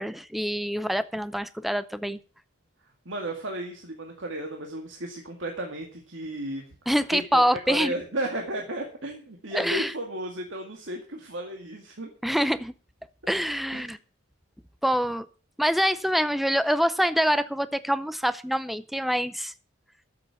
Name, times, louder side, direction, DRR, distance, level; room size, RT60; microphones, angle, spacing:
voice 1, 0.0-2.2 6.9-7.9 9.5-9.9 12.2-12.7 13.3-14.0 14.8-15.3 15.6-19.5, equal, ahead, 14 dB, 0.5 m, -25 dB
voice 2, 3.1-6.7 7.1-12.1 13.7-14.0, right 1 dB, 70° right, 2 dB, 2.1 m, -34 dB
12.0 x 7.8 x 7.1 m, 0.39 s
head